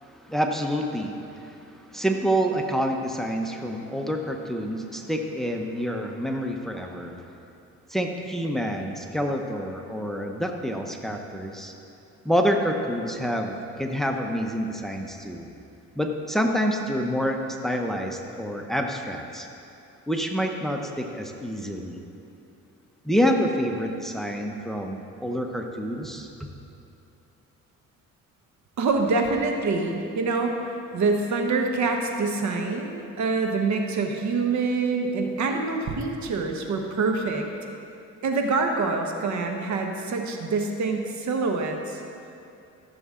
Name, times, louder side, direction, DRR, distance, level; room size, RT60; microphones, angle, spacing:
voice 1, 0.1-7.2 7.9-11.7 12.2-15.5 16.0-19.5 20.1-22.0 23.0-26.3, equal, ahead, 3 dB, 0.9 m, -27 dB
voice 2, 28.8-37.5 38.2-42.0, right 3 dB, 70° right, 3 dB, 1.2 m, -26 dB
15.0 x 7.0 x 3.8 m, 2.7 s
cardioid pair, 90°, 30 cm